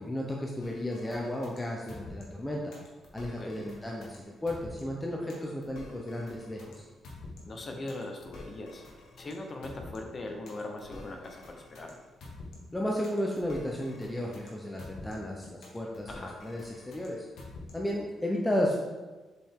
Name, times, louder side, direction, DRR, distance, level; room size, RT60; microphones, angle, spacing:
voice 1, 0.0-2.6 3.1-6.8 12.7-17.2 17.7-18.8, left 1 dB, 10° left, -2 dB, 0.7 m, -33 dB
sound 1, 0.6-18.0, left 2 dB, 75° left, 1.7 m, -48 dB
voice 2, 3.4-3.7 7.5-8.8 9.2-11.9 16.1-16.4, left 2 dB, 30° left, 3 dB, 0.9 m, -40 dB
7.3 x 5.2 x 3.7 m, 1.3 s
cardioid pair, 145°, 0 cm